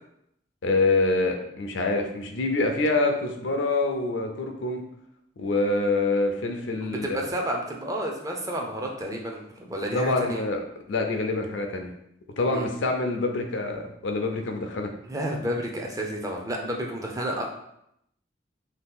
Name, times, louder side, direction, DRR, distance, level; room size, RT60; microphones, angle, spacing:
voice 1, 0.6-4.8 5.4-7.1 9.9-10.6 10.9-11.9 12.4-14.9, left 2 dB, 80° left, 4 dB, 0.5 m, -26 dB
voice 2, 6.8-10.4 12.5-12.7 15.0-17.5, right 1 dB, 20° right, 0 dB, 0.4 m, -31 dB
2.8 x 2.3 x 3.6 m, 0.77 s
head